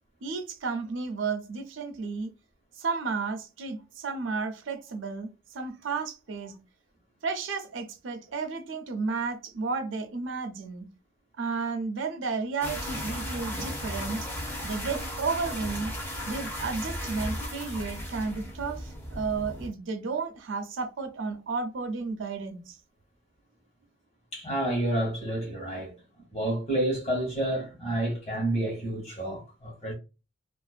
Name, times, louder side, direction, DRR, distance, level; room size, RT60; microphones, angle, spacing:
voice 1, 0.2-2.3 2.8-6.6 7.2-10.9 11.4-14.3 14.6-15.9 16.3-22.8, right 4 dB, 75° right, 0.5 m, -32 dB
sound 1, 12.6-19.7, equal, 10° left, 0.5 m, -35 dB
voice 2, 24.3-25.9 26.3-29.9, right 1 dB, 30° left, 1.0 m, -29 dB
2.5 x 2.1 x 2.3 m
head